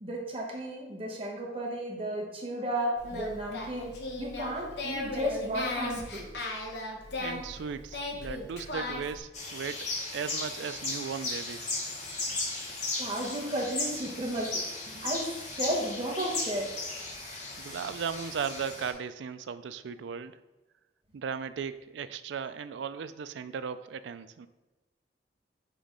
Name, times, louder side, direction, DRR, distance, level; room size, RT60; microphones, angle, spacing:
voice 1, 0.0-3.9 4.2-6.3 13.0-16.7, right 1 dB, 30° right, -2 dB, 1.1 m, -33 dB
Singing, 3.0-9.2, left 2 dB, 70° left, 1.0 m, -37 dB
voice 2, 7.2-9.9 10.1-11.8 12.3-12.4 17.6-20.4 21.1-24.5, right 6 dB, 80° right, 12 dB, 0.4 m, -37 dB
sound 1, 9.3-18.9, left 2 dB, 40° left, 1.3 m, -36 dB
5.8 x 3.5 x 5.1 m, 1.1 s
head